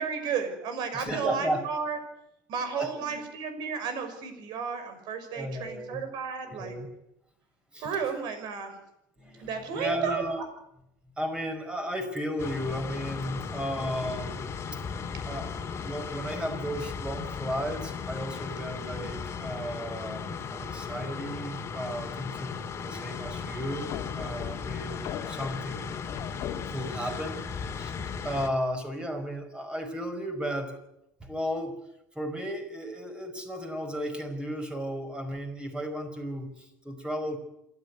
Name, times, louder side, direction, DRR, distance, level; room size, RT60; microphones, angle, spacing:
voice 1, 0.0-2.0 2.5-6.8 7.8-8.7 9.4-10.2, right 6 dB, 60° right, 8 dB, 5.9 m, -33 dB
voice 2, 0.9-1.6 2.8-3.2 5.3-6.0 6.4-6.9 7.7-8.0 9.2-10.4 11.2-14.8 15.2-25.9 26.7-27.9 28.2-30.8 31.2-31.8 32.1-37.4, equal, 10° right, 5 dB, 5.0 m, -34 dB
sound 1, 12.4-28.5, left 6 dB, 30° left, 2.6 m, -36 dB
sound 2, 23.7-27.0, left 10 dB, 55° left, 2.2 m, -39 dB
27.0 x 12.5 x 9.6 m, 0.82 s
supercardioid pair, 115°, 8 cm